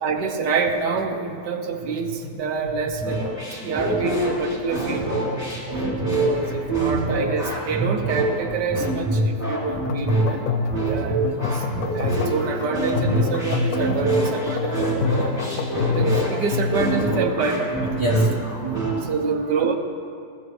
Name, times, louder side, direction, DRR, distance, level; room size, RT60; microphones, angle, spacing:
voice 1, 0.0-3.2 3.6-5.1 6.3-10.4 10.8-11.6 11.9-15.4 15.9-17.7 19.0-19.8, right 4 dB, 80° right, 5 dB, 1.6 m, -27 dB
sound 1, 3.0-19.0, right 2 dB, 10° left, 3.5 m, -25 dB
voice 2, 4.9-5.8 6.1-6.7 7.1-7.3 10.7-11.8 13.0-13.6 14.6-15.1 15.6-16.0 17.9-18.9, right 3 dB, 35° left, -3 dB, 2.3 m, -31 dB
sound 2, 9.7-17.3, left 6 dB, 65° left, 1.1 m, -28 dB
20.5 x 14.5 x 3.2 m, 2.4 s
omnidirectional pair, 1.8 m